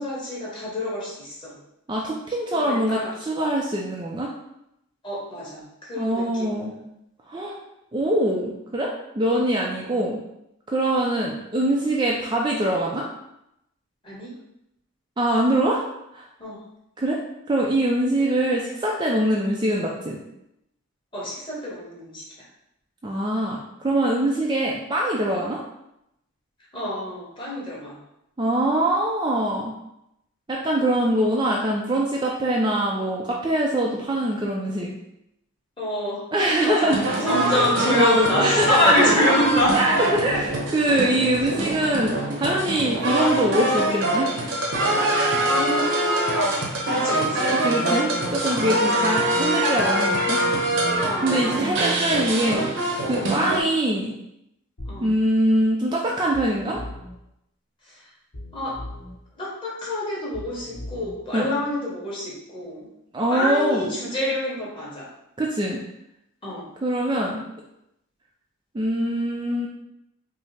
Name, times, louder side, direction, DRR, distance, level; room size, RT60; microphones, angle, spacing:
voice 1, 0.0-1.5 2.5-3.1 5.0-6.6 14.0-14.3 16.4-16.6 21.1-22.2 26.7-28.0 35.8-36.2 36.6-39.8 45.5-47.6 47.8-48.1 48.6-48.9 51.0-51.3 53.3-53.4 54.9-55.1 58.5-58.8 59.4-62.9 63.3-65.1 66.4-66.7, left 1 dB, 25° left, -6 dB, 1.3 m, -27 dB
voice 2, 1.9-4.3 6.0-6.7 7.3-7.6 7.9-10.2 10.7-13.0 15.2-15.8 16.1-16.2 17.0-17.2 17.5-20.2 23.0-25.6 28.4-29.7 30.5-34.9 36.3-37.2 37.9-39.2 39.7-44.3 47.5-50.4 51.2-52.6 53.1-54.1 55.0-56.8 61.3-61.5 63.1-63.9 65.4-65.8 66.8-67.4 68.7-69.7, right 1 dB, 20° right, -2 dB, 0.3 m, -23 dB
sound 1, 36.9-53.6, right 1 dB, 65° right, 0.8 m, -24 dB
sound 2, 54.8-55.1 56.3-57.1 58.3-59.1 60.3-61.1, left 1 dB, 60° left, 1.1 m, -38 dB
5.4 x 2.0 x 3.3 m, 0.82 s
head